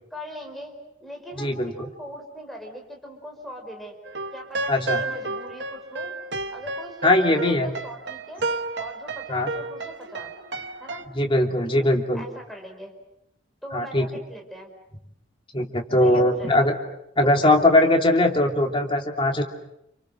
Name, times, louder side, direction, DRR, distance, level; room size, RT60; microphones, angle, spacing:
voice 1, 0.1-0.7 1.0-4.0 4.3-6.1 6.5-8.5 8.8-10.3 10.8-11.0 12.1-12.9 13.6-14.7 16.0-16.7 17.2-17.9, equal, ahead, 1 dB, 4.8 m, -40 dB
voice 2, 1.4-1.9 4.7-5.0 7.0-7.7 9.3-9.5 11.1-12.2 13.7-14.1 15.5-16.7 17.2-19.4, left 1 dB, 30° left, 2 dB, 3.0 m, -20 dB
sound 1, 4.1-11.0, right 3 dB, 65° right, 1.3 m, -32 dB
30.0 x 29.0 x 6.4 m, 0.81 s
head